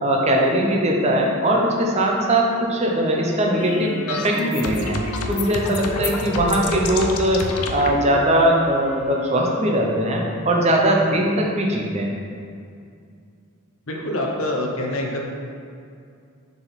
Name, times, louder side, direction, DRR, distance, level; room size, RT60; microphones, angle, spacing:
voice 1, 0.0-4.9 5.3-12.2, right 1 dB, 30° right, -1 dB, 0.7 m, -20 dB
Wind instrument woodwind instrument, 2.9-10.6, left 1 dB, 35° left, 1.5 m, -34 dB
sound 1, 3.6-7.9, left 3 dB, 90° left, 0.6 m, -29 dB
voice 2, 13.9-15.2, left 1 dB, 65° left, -1 dB, 0.9 m, -25 dB
6.9 x 3.8 x 4.1 m, 2.4 s
head